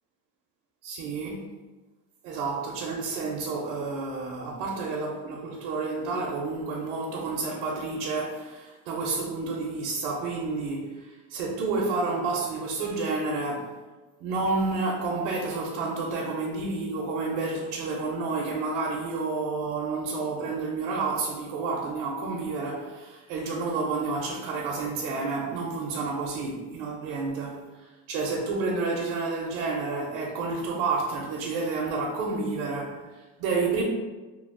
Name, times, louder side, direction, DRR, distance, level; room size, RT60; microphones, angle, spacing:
voice 1, 0.8-1.4 2.2-13.7 14.2-27.6 28.1-33.8, right 3 dB, 85° right, -2 dB, 0.7 m, -30 dB
3.0 x 2.0 x 3.6 m, 1.2 s
cardioid pair, 135°, 38 cm